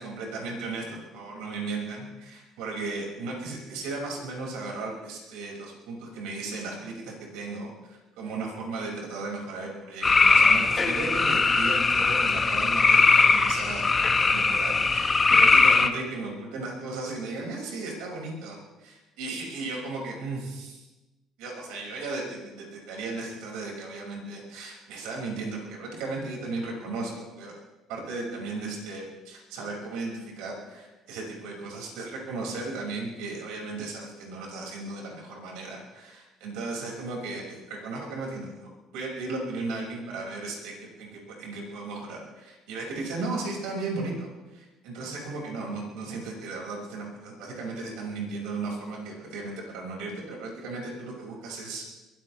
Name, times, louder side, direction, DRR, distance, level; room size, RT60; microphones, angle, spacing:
voice 1, 0.0-13.8 14.1-20.8 21.4-27.5 27.9-51.8, right 3 dB, 85° right, -2 dB, 5.9 m, -36 dB
sound 1, 10.0-15.9, left 4 dB, 25° left, 1.4 m, -20 dB
23.0 x 17.0 x 3.4 m, 1.1 s
cardioid pair, 95°, 0 cm